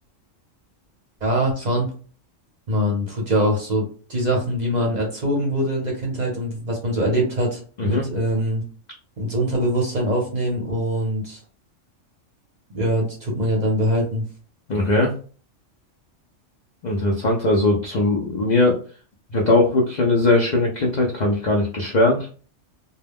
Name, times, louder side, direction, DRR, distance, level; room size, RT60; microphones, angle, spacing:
voice 1, 1.2-1.9 2.7-8.6 9.2-11.4 12.7-14.2, equal, 40° right, -1 dB, 0.7 m, -23 dB
voice 2, 14.7-15.1 16.8-18.8 19.3-22.2, left 2 dB, 65° left, -1 dB, 0.4 m, -19 dB
2.2 x 2.1 x 3.4 m, 0.40 s
omnidirectional pair, 1.3 m